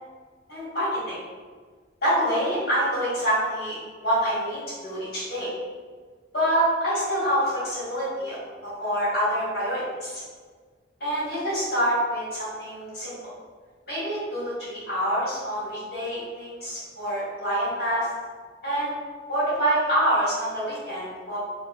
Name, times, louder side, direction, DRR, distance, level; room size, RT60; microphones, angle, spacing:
voice 1, 0.5-1.2 2.0-5.5 6.3-8.4 8.6-10.2 11.0-13.1 13.9-18.1 18.6-18.9 19.3-21.4, equal, 55° left, -10 dB, 1.4 m, -26 dB
3.3 x 2.5 x 2.4 m, 1.5 s
head